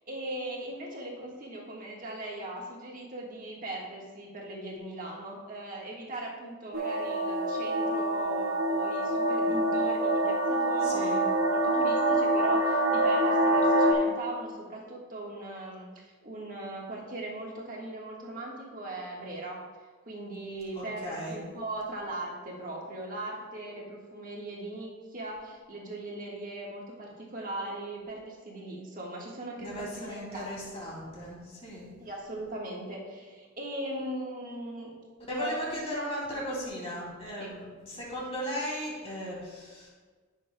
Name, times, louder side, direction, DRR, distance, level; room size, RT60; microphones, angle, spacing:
voice 1, 0.0-19.6 20.0-30.7 32.0-34.9 35.3-35.8 36.3-36.4 37.4-37.5, right 1 dB, 40° right, -2 dB, 1.5 m, -39 dB
sound 1, 6.7-13.9, right 1 dB, 70° right, 1.1 m, -26 dB
voice 2, 10.9-11.3 21.0-21.4 29.6-31.9 35.3-39.9, equal, 25° left, -4 dB, 2.6 m, -36 dB
14.5 x 6.4 x 2.2 m, 1.4 s
head